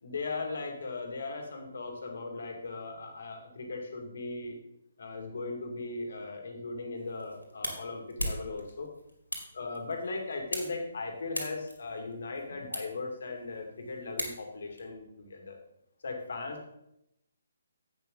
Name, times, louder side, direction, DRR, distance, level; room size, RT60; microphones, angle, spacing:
voice 1, 0.0-4.6 5.0-8.9 9.5-15.6 16.0-16.7, left 3 dB, 55° left, 3 dB, 2.2 m, -38 dB
sound 1, 7.0-14.8, equal, 90° left, 2.5 m, -41 dB
10.5 x 8.4 x 3.9 m, 0.79 s
figure-of-eight pair, 135°, 0 cm